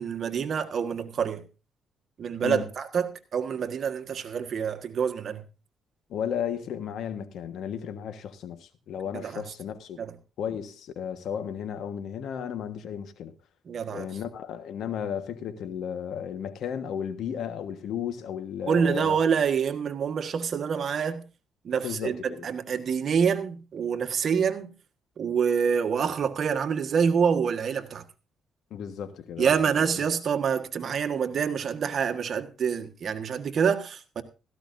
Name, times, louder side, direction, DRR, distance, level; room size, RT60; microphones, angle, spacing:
voice 1, 0.0-1.4 2.2-5.4 9.1-9.4 10.0-10.1 13.7-14.1 18.7-21.3 21.6-24.7 25.2-28.0 29.4-34.2, right 7 dB, 55° right, 1.5 m, -26 dB
voice 2, 6.1-10.0 10.4-13.3 13.9-19.2 21.8-22.5 28.7-29.6 29.9-30.0, left 8 dB, 75° left, 1.4 m, -34 dB
16.5 x 14.0 x 2.7 m
cardioid pair, 90°, 0 cm